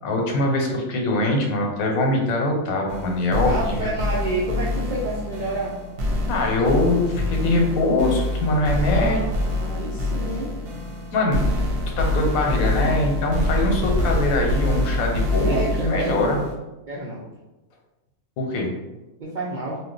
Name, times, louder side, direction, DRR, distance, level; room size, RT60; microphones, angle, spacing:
voice 1, 0.0-3.9 6.3-9.2 11.1-11.4 12.0-16.4 18.4-18.7, left 2 dB, 85° left, 1 dB, 1.1 m, -22 dB
sound 1, 2.9-16.5, left 1 dB, 60° right, 0.8 m, -25 dB
voice 2, 3.4-5.8 8.9-10.5 15.4-16.4 16.9-17.2 19.2-19.8, right 2 dB, 80° right, -5 dB, 0.4 m, -29 dB
2.6 x 2.2 x 3.7 m, 1.0 s
omnidirectional pair, 1.5 m